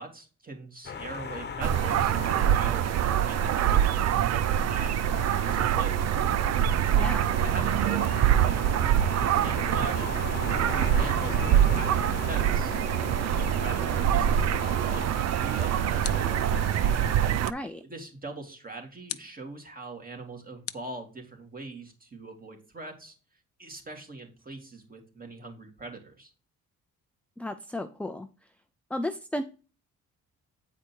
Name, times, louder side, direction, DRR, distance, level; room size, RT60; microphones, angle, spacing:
voice 1, 0.0-2.1 2.5-6.1 7.3-10.1 10.3-12.8 13.3-16.4 17.7-23.1 23.6-26.3, right 2 dB, 30° right, 2 dB, 2.8 m, -42 dB
sound 1, 0.8-17.3, left 5 dB, 35° left, 1.2 m, -38 dB
sound 2, 1.6-17.5, right 10 dB, 60° right, 0.5 m, -25 dB
voice 2, 6.9-7.3 17.5-17.8 27.4-28.3 28.9-29.4, left 1 dB, 5° left, 7 dB, 0.6 m, -33 dB
sound 3, 16.0-16.5 17.4-17.8 19.1-19.4 20.7-21.5, left 11 dB, 50° left, 0.6 m, -41 dB
8.6 x 4.9 x 4.5 m, 0.34 s
cardioid pair, 90°, 30 cm